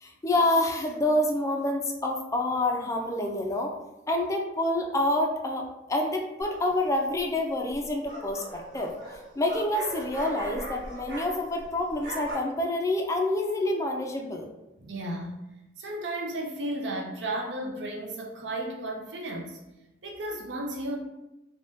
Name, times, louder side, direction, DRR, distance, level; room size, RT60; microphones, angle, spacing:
voice 1, 0.0-3.7 4.1-8.9 9.4-14.5, left 1 dB, 15° left, 2 dB, 0.3 m, -27 dB
sound 1, 6.4-6.8 7.7-11.6 11.9-12.3, right 2 dB, 50° right, 1.3 m, -40 dB
voice 2, 14.8-15.3 15.8-19.6 20.0-21.0, right 1 dB, 75° right, 1 dB, 0.5 m, -34 dB
3.4 x 2.1 x 2.6 m, 0.97 s
head